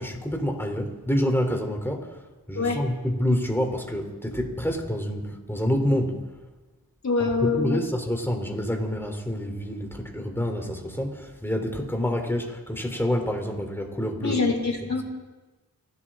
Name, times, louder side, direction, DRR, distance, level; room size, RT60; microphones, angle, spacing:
voice 1, 0.0-2.2 2.5-6.3 7.2-14.4, equal, 5° left, 3 dB, 3.6 m, -27 dB
voice 2, 7.0-7.8 14.2-15.0, left 4 dB, 50° left, 1 dB, 4.0 m, -24 dB
27.5 x 13.0 x 3.8 m, 1.2 s
cardioid pair, 50°, 36 cm